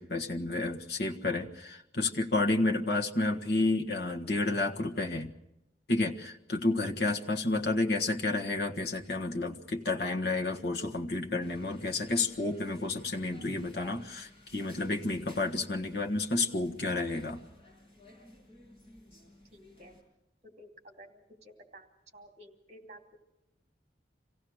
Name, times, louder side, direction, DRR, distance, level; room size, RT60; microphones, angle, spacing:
voice 1, 0.0-5.3 5.9-17.4, left 2 dB, 65° left, 3 dB, 1.6 m, -31 dB
sound 1, 11.4-20.0, left 1 dB, 35° left, 6.2 m, -55 dB
voice 2, 19.5-19.9 20.4-21.9 22.1-23.2, right 1 dB, 40° right, 4 dB, 2.9 m, -53 dB
26.0 x 17.0 x 6.4 m, 0.89 s
head